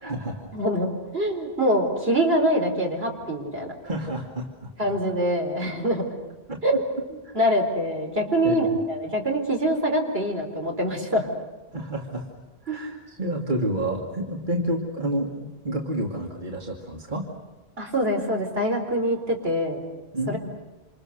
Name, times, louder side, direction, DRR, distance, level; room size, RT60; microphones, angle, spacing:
voice 1, 0.0-0.5 3.8-4.7 6.5-6.6 7.3-7.4 8.4-8.7 11.7-12.2 12.6-17.3 20.1-20.4, right 1 dB, 50° right, 0 dB, 2.6 m, -29 dB
voice 2, 0.5-3.7 4.8-6.1 6.6-6.8 7.3-11.3 12.7-12.8 17.8-19.8 20.3-20.4, equal, 75° right, 1 dB, 4.5 m, -24 dB
27.5 x 27.5 x 6.7 m, 1.1 s
omnidirectional pair, 1.0 m